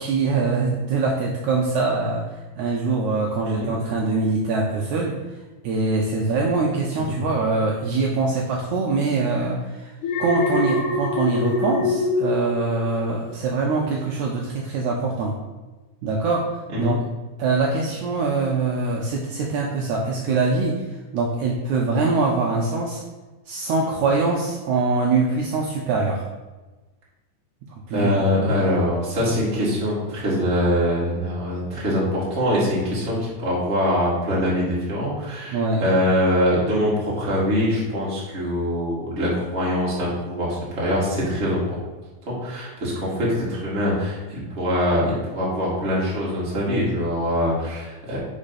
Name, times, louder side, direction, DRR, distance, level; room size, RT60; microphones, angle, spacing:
voice 1, 0.0-5.4 5.6-15.4 16.0-16.5 16.8-17.0 17.4-23.0 23.5-26.3 27.7-28.9 35.5-35.8, right 3 dB, 85° right, -1 dB, 1.6 m, -23 dB
Alarm, 10.0-13.3 13.7-14.1, left 3 dB, 70° left, 2.1 m, -24 dB
voice 2, 27.9-41.6 42.3-48.2, equal, 25° right, -6 dB, 1.6 m, -23 dB
5.0 x 4.4 x 5.7 m, 1.2 s
omnidirectional pair, 4.2 m